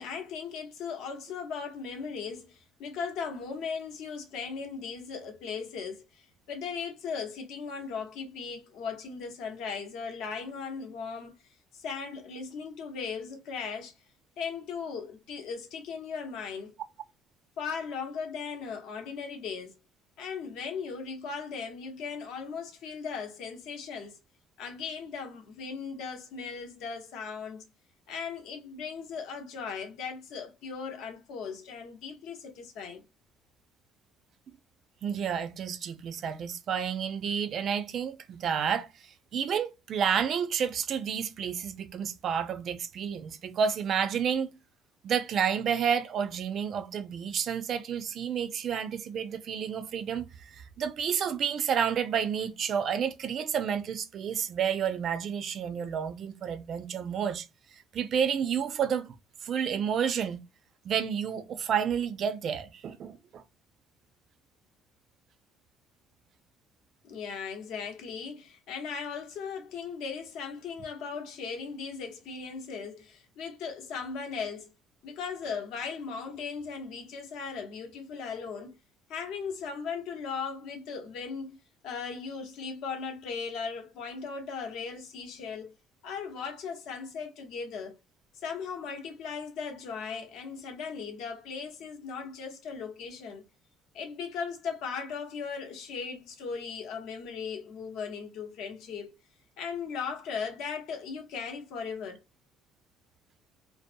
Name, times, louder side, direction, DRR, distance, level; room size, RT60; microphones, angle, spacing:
voice 1, 0.0-11.3 11.7-14.0 14.4-16.7 17.6-19.8 20.2-24.2 24.6-27.6 28.1-33.0 67.0-74.7 75.0-78.7 79.1-81.6 81.8-85.7 86.0-88.0 88.3-93.4 93.9-99.1 99.6-102.2, left 5 dB, 70° left, 0.7 m, -38 dB
voice 2, 35.0-38.9 39.3-44.6 45.0-57.5 57.9-59.1 59.4-60.4 60.8-63.4, right 7 dB, 45° right, 0.4 m, -30 dB
2.6 x 2.0 x 2.4 m
cardioid pair, 160°, 0 cm